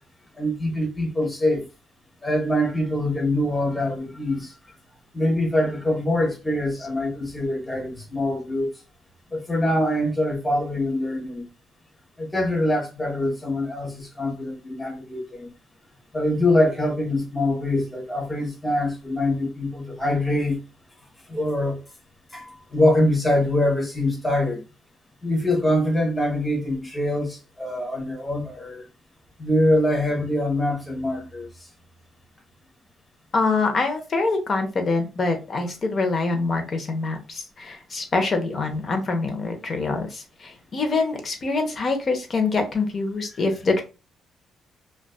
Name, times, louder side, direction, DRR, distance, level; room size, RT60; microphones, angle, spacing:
voice 1, 0.4-1.6 2.2-4.5 5.1-8.7 9.3-11.5 12.2-15.5 16.1-20.6 21.3-21.8 22.3-24.6 25.2-28.8 29.4-31.5, left 1 dB, 15° left, 1.0 m, -24 dB
voice 2, 33.3-43.8, left 3 dB, 45° left, 0.7 m, -25 dB
2.5 x 2.2 x 2.3 m
cardioid pair, 90°, 0 cm